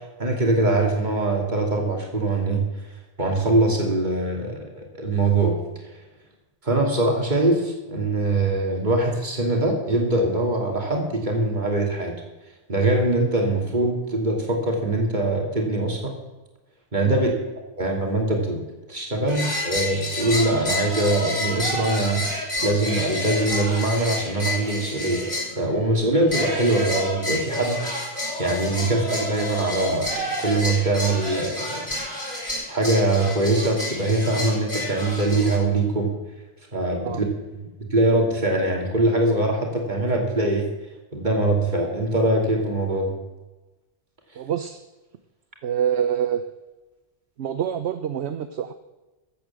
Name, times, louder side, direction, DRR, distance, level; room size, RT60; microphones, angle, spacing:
voice 1, 0.2-2.7 3.2-5.6 6.6-12.1 12.7-16.1 16.9-17.3 17.8-18.6 18.9-22.2 22.6-25.3 25.6-28.1 28.4-31.9 32.3-32.4 32.7-36.1 36.7-37.2 37.8-40.6 41.1-43.1, right 2 dB, 40° right, 1 dB, 2.9 m, -22 dB
sound 1, 19.3-25.5 26.3-35.6, left 1 dB, 45° left, 6.7 m, -29 dB
voice 2, 44.4-44.8 45.6-46.4 47.4-48.7, right 9 dB, 65° right, 10 dB, 1.0 m, -26 dB
14.5 x 8.6 x 7.5 m, 1.1 s
omnidirectional pair, 1.2 m